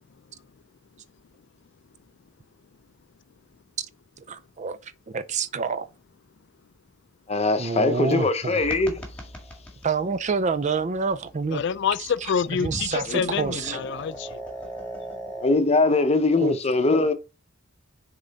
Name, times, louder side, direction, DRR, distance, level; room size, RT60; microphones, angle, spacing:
voice 1, 4.2-4.8 5.1-5.9 7.6-8.6 9.8-11.6 12.6-13.8 15.8-16.1 16.4-16.6, right 5 dB, 40° right, 0.5 m, -27 dB
voice 2, 7.3-9.0 13.1-13.8 15.4-17.1, left 3 dB, 35° left, 0.7 m, -22 dB
sound 1, 8.6-15.5, right 1 dB, 5° left, 1.8 m, -40 dB
voice 3, 11.5-14.4, left 7 dB, 65° left, 0.4 m, -27 dB
6.7 x 3.8 x 4.0 m
head